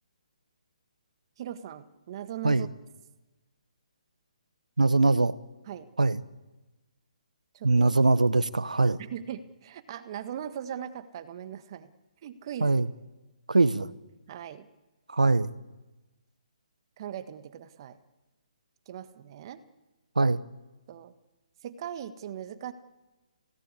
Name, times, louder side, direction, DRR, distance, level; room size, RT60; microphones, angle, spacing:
voice 1, 1.4-2.7 5.7-5.9 7.5-8.2 9.0-11.9 12.2-12.8 14.3-14.7 17.0-18.0 18.9-19.6 20.9-21.1 21.6-22.7, right 9 dB, 40° right, 11 dB, 1.6 m, -39 dB
voice 2, 4.8-5.4 6.0-6.2 7.6-9.0 12.6-12.9 13.5-13.9 15.1-15.5 20.1-20.4, right 3 dB, 90° right, 16 dB, 1.2 m, -22 dB
29.5 x 18.0 x 8.4 m, 1.1 s
figure-of-eight pair, 145°, 4 cm